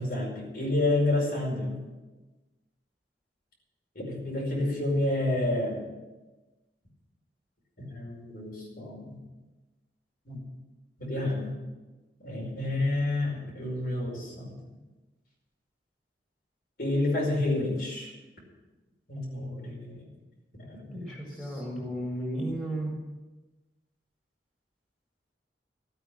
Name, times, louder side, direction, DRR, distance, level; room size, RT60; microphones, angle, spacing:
voice 1, 0.0-1.8 4.0-5.9 7.8-9.2 10.3-10.4 11.0-11.6 12.2-14.6 16.8-18.1 19.1-20.1 20.6-21.0 21.4-21.9, left 2 dB, 55° left, -2 dB, 5.2 m, -30 dB
voice 2, 20.9-23.0, right 1 dB, 5° left, -2 dB, 4.6 m, -34 dB
14.0 x 9.0 x 7.3 m, 1.1 s
head